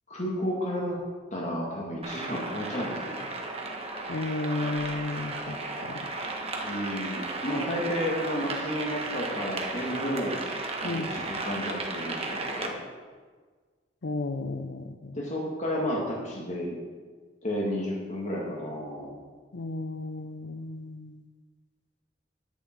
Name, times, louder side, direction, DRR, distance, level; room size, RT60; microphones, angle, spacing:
voice 1, 0.1-1.0 1.3-3.3 6.6-10.4 10.8-12.8 15.1-16.8 17.4-19.2, equal, 40° left, -3 dB, 2.2 m, -32 dB
sound 1, 2.0-12.7, right 3 dB, 35° right, 1.4 m, -34 dB
voice 2, 4.1-5.6 5.8-6.1 10.8-11.1 14.0-15.2 19.5-21.2, left 2 dB, 70° left, 11 dB, 0.7 m, -33 dB
10.5 x 10.0 x 4.7 m, 1.5 s
head